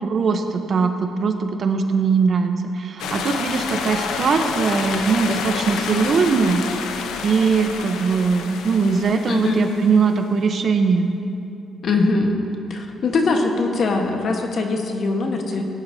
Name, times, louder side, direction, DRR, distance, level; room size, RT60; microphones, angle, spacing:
voice 1, 0.0-6.6 7.2-11.1, right 5 dB, 55° right, 6 dB, 0.8 m, -20 dB
sound 1, 3.0-10.2, left 5 dB, 85° left, 0.7 m, -29 dB
voice 2, 9.3-9.7 11.8-12.3 12.7-15.6, left 3 dB, 55° left, 3 dB, 1.3 m, -21 dB
17.0 x 10.5 x 2.8 m, 2.7 s
cardioid pair, 90°, 0 cm